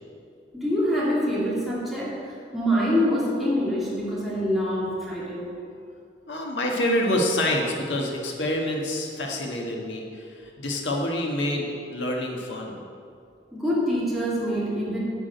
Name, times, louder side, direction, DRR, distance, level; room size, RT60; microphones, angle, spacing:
voice 1, 0.5-5.5 13.5-15.0, equal, ahead, -8 dB, 2.7 m, -25 dB
voice 2, 6.3-12.8, left 1 dB, 85° left, -1 dB, 1.5 m, -27 dB
11.0 x 4.9 x 8.0 m, 2.4 s
head